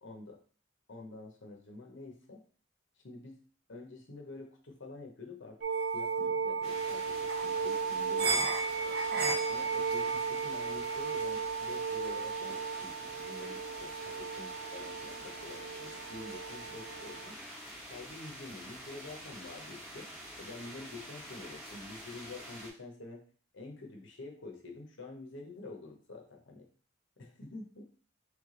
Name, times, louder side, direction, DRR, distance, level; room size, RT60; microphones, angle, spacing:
voice 1, 0.0-0.4 0.9-2.4 3.0-3.4 3.7-5.6 5.9-9.0 9.5-17.3 17.8-20.1 20.4-23.2 23.5-26.6 27.2-27.8, left 3 dB, 65° left, 2 dB, 0.8 m, -48 dB
sound 1, 5.6-17.3, right 5 dB, 50° right, 0.5 m, -34 dB
sound 2, 6.6-22.7, equal, 5° right, 1.0 m, -47 dB
3.4 x 3.2 x 3.7 m, 0.41 s
head